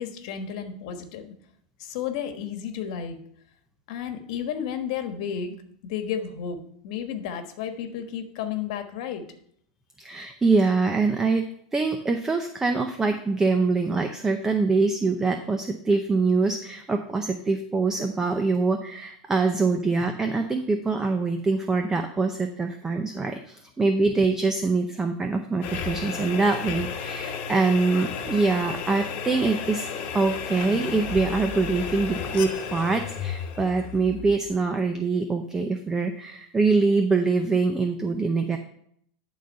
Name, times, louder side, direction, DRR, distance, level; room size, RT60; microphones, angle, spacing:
voice 1, 0.0-1.3 1.8-3.2 3.9-5.6 5.8-9.2, left 8 dB, 60° left, 7 dB, 1.3 m, -32 dB
voice 2, 10.0-29.9 30.1-38.6, right 3 dB, 10° right, 6 dB, 0.6 m, -24 dB
sound 1, 25.6-34.8, left 7 dB, 40° left, 1.2 m, -33 dB
11.5 x 3.9 x 5.4 m, 0.68 s
supercardioid pair, 135°, 4 cm